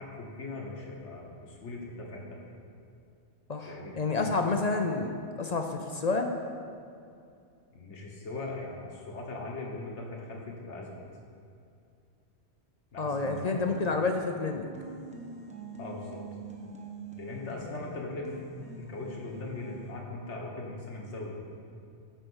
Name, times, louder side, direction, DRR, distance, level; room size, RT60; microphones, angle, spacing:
voice 1, 0.0-2.4 3.7-4.3 7.7-11.0 12.9-13.6 15.8-16.2 17.2-18.4 18.8-21.4, left 2 dB, 80° left, -1 dB, 1.7 m, -40 dB
voice 2, 3.5-5.1 5.4-6.3 13.0-14.7, left 3 dB, 45° left, 4 dB, 0.6 m, -29 dB
sound 1, 13.1-14.3 14.7-19.9, right 1 dB, 5° right, 1.1 m, -44 dB
13.0 x 4.5 x 6.3 m, 2.5 s
omnidirectional pair, 1.2 m